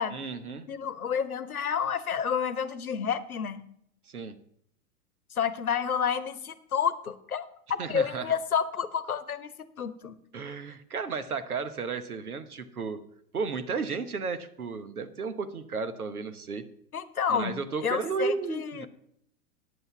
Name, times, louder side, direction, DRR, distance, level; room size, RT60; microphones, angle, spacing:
voice 1, 0.1-0.7 4.1-4.4 7.8-8.3 10.3-13.0 13.3-16.6 17.3-18.9, right 5 dB, 75° right, 10 dB, 1.1 m, -33 dB
voice 2, 0.7-3.7 5.4-9.5 9.8-10.2 16.9-18.9, left 7 dB, 75° left, 15 dB, 1.0 m, -30 dB
9.8 x 7.9 x 5.9 m, 0.70 s
figure-of-eight pair, 95°, 44 cm